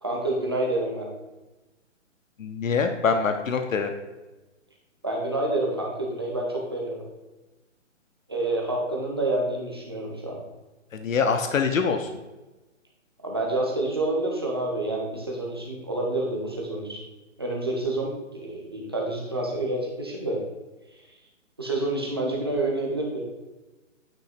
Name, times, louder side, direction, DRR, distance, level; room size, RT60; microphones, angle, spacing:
voice 1, 0.0-1.1 5.0-7.0 8.3-10.4 13.2-17.0 17.4-20.4 21.6-23.2, right 2 dB, 20° right, -2 dB, 0.6 m, -28 dB
voice 2, 2.4-3.9 10.9-12.1, left 5 dB, 90° left, 6 dB, 0.9 m, -24 dB
8.9 x 3.0 x 4.3 m, 1.1 s
hypercardioid pair, 175°, 38 cm